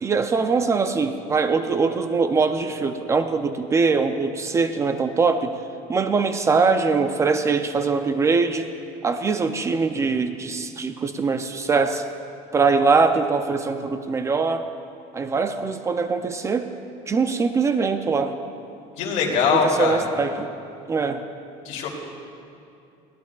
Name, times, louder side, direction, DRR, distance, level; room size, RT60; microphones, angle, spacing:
voice 1, 0.0-5.5 5.9-8.7 9.0-12.1 12.5-14.7 15.1-16.7 17.1-18.4 19.5-20.5 20.9-21.2, right 4 dB, 20° right, 9 dB, 0.4 m, -22 dB
voice 2, 19.0-20.0 21.6-21.9, left 5 dB, 60° left, -1 dB, 2.6 m, -22 dB
21.0 x 16.5 x 2.3 m, 2.6 s
cardioid pair, 155°, 14 cm